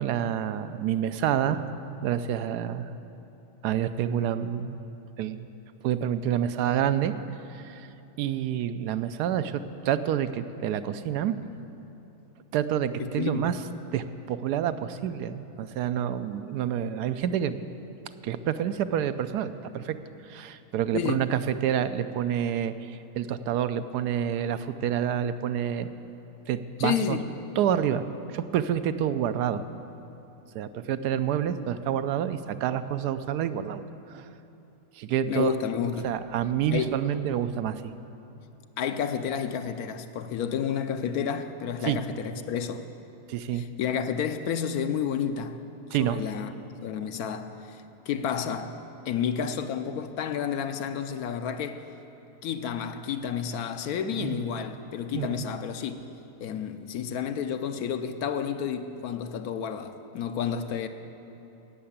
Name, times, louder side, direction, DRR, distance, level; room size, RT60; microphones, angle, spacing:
voice 1, 0.0-1.7 2.0-2.9 3.6-4.8 5.2-5.5 5.8-7.1 7.5-7.9 8.2-11.4 12.5-13.6 13.9-17.6 18.2-20.0 20.2-25.9 26.5-27.2 27.6-29.6 30.5-33.8 34.1-34.3 35.0-35.5 36.0-37.9 41.8-42.0 43.3-43.6 45.9-46.2 54.2-54.4 55.1-55.4, right 9 dB, 85° right, 1.2 m, -28 dB
voice 2, 13.2-13.5 20.9-21.2 26.8-27.3 35.3-36.1 36.7-37.0 38.8-42.8 43.5-45.6 46.0-46.5 46.8-48.8 49.1-51.8 52.4-56.0 56.4-60.9, left 7 dB, 75° left, 1.1 m, -30 dB
16.5 x 6.7 x 8.7 m
omnidirectional pair, 1.7 m